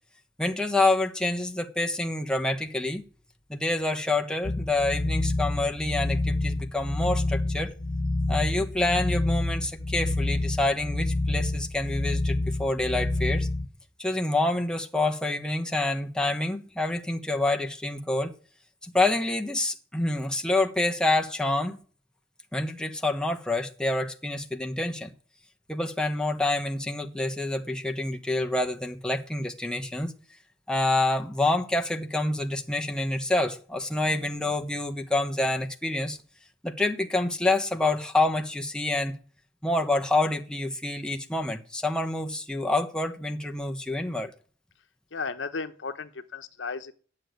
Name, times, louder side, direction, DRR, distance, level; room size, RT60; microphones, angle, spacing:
voice 1, 0.4-3.0 3.5-7.7 8.3-13.5 14.0-18.3 18.8-21.8 22.5-25.1 25.7-30.1 30.7-36.2 36.6-39.1 39.6-44.3, left 2 dB, 5° left, 1.1 m, -27 dB
sound 1, 4.4-13.7, left 2 dB, 45° left, 1.5 m, -28 dB
voice 2, 45.1-46.9, left 4 dB, 75° left, 0.9 m, -34 dB
12.0 x 6.6 x 9.3 m
head